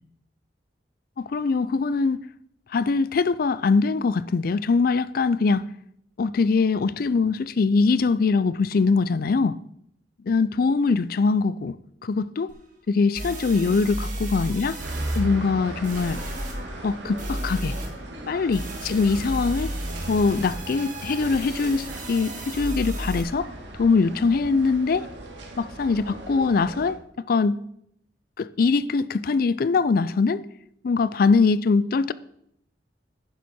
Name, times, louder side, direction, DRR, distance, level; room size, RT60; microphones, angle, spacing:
voice 1, 1.2-2.2 2.7-5.7 6.2-9.5 10.3-12.5 12.9-14.8 15.2-16.2 16.8-17.8 18.3-19.7 20.1-23.5 23.8-25.1 25.6-27.0 27.3-27.6 28.4-30.4 30.8-32.1, left 4 dB, 55° left, 0.4 m, -22 dB
sound 1, 12.5-12.6 13.1-15.2 15.8-16.5 17.2-17.9 18.5-23.2, right 1 dB, 45° right, 2.1 m, -33 dB
sound 2, 14.8-26.9, right 1 dB, 80° right, 1.8 m, -37 dB
10.5 x 7.3 x 4.3 m
head